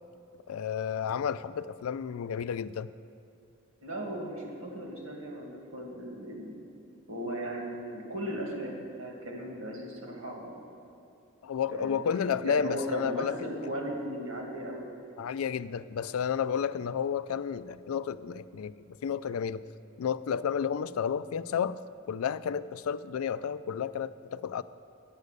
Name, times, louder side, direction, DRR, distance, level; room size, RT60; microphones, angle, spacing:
voice 1, 0.5-2.9 11.4-13.4 15.2-19.6 20.0-21.8 22.1-24.6, left 7 dB, 85° left, 15 dB, 0.4 m, -31 dB
voice 2, 3.8-6.5 7.1-10.6 11.7-14.9, right 1 dB, 80° right, 0 dB, 2.1 m, -37 dB
9.4 x 8.2 x 6.6 m, 2.8 s
head